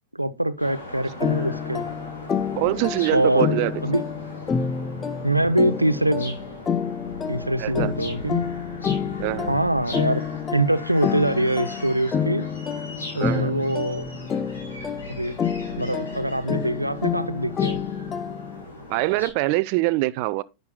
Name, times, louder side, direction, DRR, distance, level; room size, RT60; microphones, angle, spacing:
voice 1, 0.1-1.8 3.1-4.0 5.2-6.4 7.3-8.5 9.5-10.2 10.5-12.5 13.1-14.1 15.1-15.4 15.8-17.8, right 1 dB, 85° right, 0.6 m, -24 dB
sound 1, 0.6-19.3, left 1 dB, 75° left, 4.6 m, -39 dB
sound 2, 1.2-18.6, left 6 dB, 20° left, 0.7 m, -29 dB
voice 2, 2.6-3.8 7.6-7.9 9.2-9.6 13.1-13.5 18.9-20.4, right 20 dB, 45° right, 0.4 m, -24 dB
11.5 x 9.1 x 2.2 m
figure-of-eight pair, 90°, 0 cm